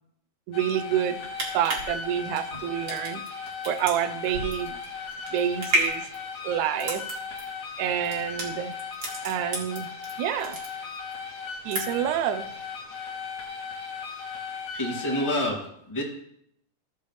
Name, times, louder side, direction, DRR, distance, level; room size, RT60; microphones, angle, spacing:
sound 1, 0.5-15.5, left 5 dB, 60° left, 2.4 m, -37 dB
voice 1, 0.5-1.2 1.5-3.2 3.7-4.8 5.3-6.1 6.4-7.0 7.8-8.7 9.2-9.9 10.2-10.6 11.7-12.5, right 10 dB, 80° right, 12 dB, 1.9 m, -28 dB
sound 2, 1.1-10.1 10.4-11.2 11.5-12.2 12.5-12.6, right 1 dB, 40° right, 2.3 m, -32 dB
voice 2, 14.7-16.0, left 1 dB, 10° left, -5 dB, 2.0 m, -28 dB
14.5 x 6.8 x 3.3 m, 0.74 s
omnidirectional pair, 3.7 m